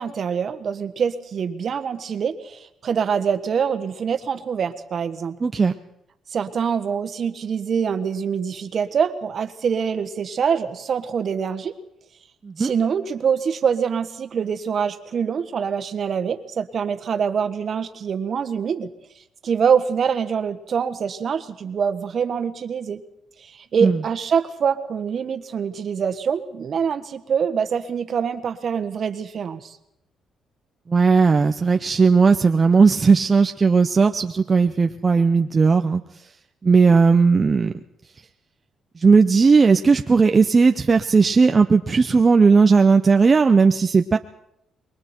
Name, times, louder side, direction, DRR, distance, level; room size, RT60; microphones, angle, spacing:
voice 1, 0.0-5.4 6.3-11.7 12.6-18.9 19.4-23.0 23.4-29.8, right 7 dB, 55° right, 10 dB, 1.5 m, -24 dB
voice 2, 5.4-5.7 12.4-12.7 23.8-24.0 30.9-36.0 36.6-37.7 39.0-44.2, right 4 dB, 35° right, 7 dB, 0.7 m, -16 dB
28.0 x 22.0 x 4.5 m, 0.80 s
cardioid pair, 90°, 0 cm